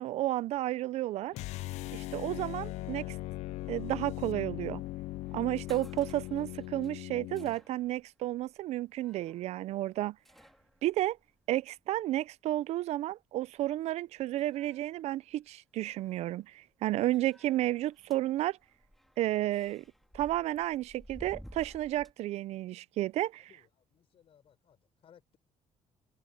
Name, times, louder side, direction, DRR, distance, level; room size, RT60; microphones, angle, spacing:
voice 1, 0.0-1.3 1.9-3.2 3.7-4.8 5.3-10.2 10.8-11.2 11.5-18.6 19.2-19.8 20.1-23.5, right 15 dB, 75° right, 0.5 m, -32 dB
sound 1, 1.3-7.6, left 18 dB, 85° left, 0.4 m, -39 dB
sound 2, 3.3-12.1 13.4-13.8 14.2-15.5 15.7-16.4 17.1-22.1, equal, ahead, 2.2 m, -57 dB
voice 2, 23.4-25.4, left 9 dB, 55° left, 5.5 m, -63 dB
cardioid pair, 100°, 11 cm